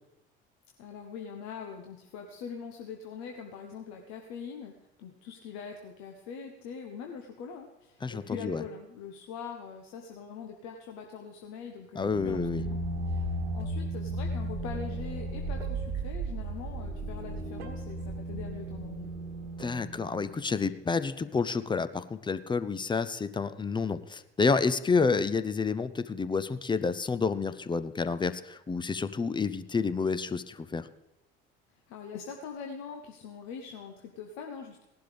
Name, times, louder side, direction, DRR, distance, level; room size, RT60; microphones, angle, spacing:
voice 1, 0.8-12.8 13.1-19.1 31.9-34.8, left 6 dB, 60° left, 4 dB, 1.1 m, -43 dB
voice 2, 8.0-8.6 11.9-12.6 19.6-30.9, left 4 dB, 15° left, 13 dB, 0.5 m, -29 dB
sound 1, 12.0-20.6, right 1 dB, 80° right, 1.4 m, -35 dB
17.5 x 11.5 x 3.4 m, 0.91 s
figure-of-eight pair, 55°, 31 cm